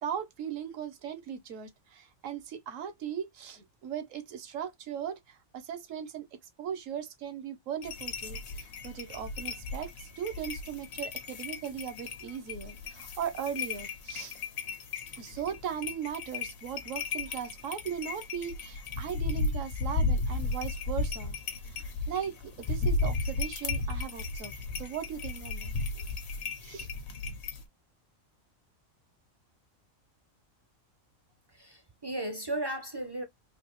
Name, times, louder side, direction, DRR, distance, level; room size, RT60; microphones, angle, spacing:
voice 1, 0.0-6.3 6.6-14.3 15.2-21.4 21.7-24.5 24.8-26.1 26.4-26.9, right 8 dB, 75° right, 1.1 m, -38 dB
sound 1, 7.8-27.6, left 3 dB, 90° left, 1.3 m, -35 dB
voice 2, 31.5-33.2, right 1 dB, 30° right, 0.4 m, -35 dB
3.9 x 2.7 x 3.0 m
omnidirectional pair, 1.4 m